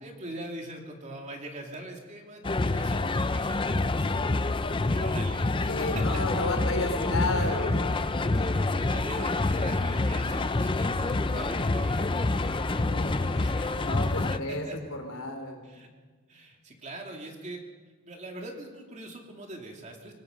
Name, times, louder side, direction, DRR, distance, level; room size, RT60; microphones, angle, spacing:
voice 1, 0.0-6.0 8.7-14.8 15.6-15.9 16.3-17.6 18.0-20.1, right 1 dB, 35° right, 1 dB, 2.8 m, -42 dB
sound 1, 2.4-14.4, left 2 dB, 25° left, 0.5 m, -27 dB
voice 2, 5.7-8.1 12.9-13.2 13.8-15.7, left 2 dB, 85° left, 4 dB, 3.8 m, -32 dB
sound 2, 5.8-13.8, equal, 5° right, 4.7 m, -42 dB
25.5 x 19.0 x 5.3 m, 1.4 s
head